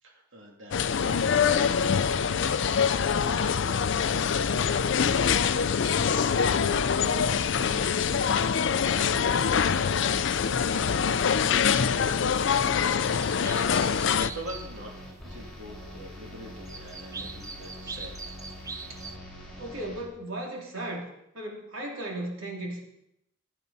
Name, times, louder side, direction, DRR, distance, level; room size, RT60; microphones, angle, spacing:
voice 1, 0.0-1.5 2.8-4.1 4.4-5.6 6.0-6.9 7.3-13.3 14.3-14.9 15.2-18.3, right 1 dB, 70° right, -1 dB, 2.9 m, -46 dB
sound 1, 0.7-14.3, left 7 dB, 60° left, 0.4 m, -24 dB
sound 2, 1.5-20.0, equal, ahead, 3.8 m, -44 dB
sound 3, 12.5-12.6 13.0-15.0 16.7-19.2, right 4 dB, 15° right, 0.6 m, -42 dB
voice 2, 19.6-21.1 21.3-22.8, right 1 dB, 85° right, 0 dB, 3.0 m, -36 dB
16.0 x 9.6 x 4.2 m, 0.80 s
head